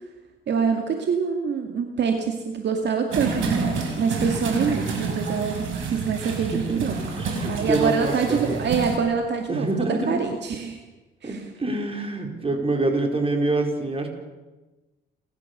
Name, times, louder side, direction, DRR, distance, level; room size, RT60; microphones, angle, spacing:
voice 1, 0.5-7.0 7.5-10.8 11.2-11.4, right 6 dB, 60° right, 4 dB, 2.3 m, -25 dB
sound 1, 3.1-9.0, right 4 dB, 80° right, 5.9 m, -29 dB
voice 2, 6.4-6.8 7.2-8.5 9.5-10.1 11.2-14.1, right 2 dB, 30° right, 3 dB, 4.8 m, -25 dB
30.0 x 13.5 x 6.9 m, 1.2 s
cardioid pair, 90°, 20 cm